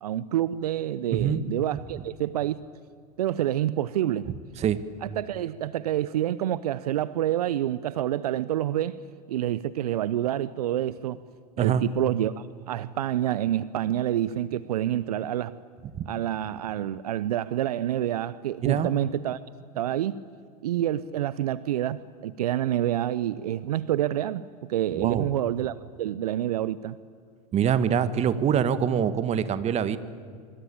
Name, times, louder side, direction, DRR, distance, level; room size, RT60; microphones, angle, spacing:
voice 1, 0.0-2.6 3.2-4.3 5.0-9.0 9.3-11.2 11.6-15.6 16.0-19.4 19.8-20.2 20.6-27.0, right 12 dB, 70° right, 18 dB, 0.8 m, -28 dB
voice 2, 1.1-1.4 4.3-4.8 11.6-11.8 16.0-16.1 18.6-18.9 24.9-25.3 27.5-30.0, right 8 dB, 35° right, 13 dB, 1.7 m, -25 dB
25.0 x 25.0 x 8.8 m, 2.1 s
hypercardioid pair, 95°, 20 cm